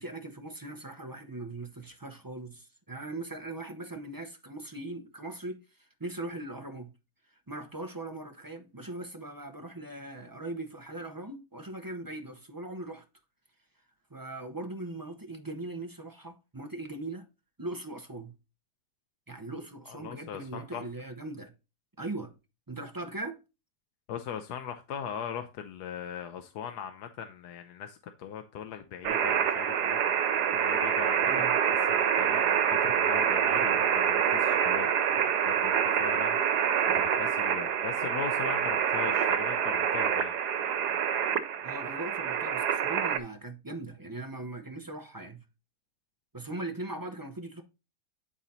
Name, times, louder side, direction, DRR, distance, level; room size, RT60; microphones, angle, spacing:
voice 1, 0.0-6.9 7.3-13.0 14.1-17.2 17.6-18.3 19.3-21.5 22.0-22.3 22.7-23.4 31.2-31.5 41.6-45.4 46.3-47.6, right 2 dB, 20° right, 0.6 m, -40 dB
voice 2, 19.9-20.8 24.1-40.7, left 8 dB, 80° left, 1.3 m, -40 dB
sound 1, 29.0-43.2, right 8 dB, 90° right, 1.4 m, -26 dB
10.0 x 3.9 x 4.2 m
omnidirectional pair, 1.7 m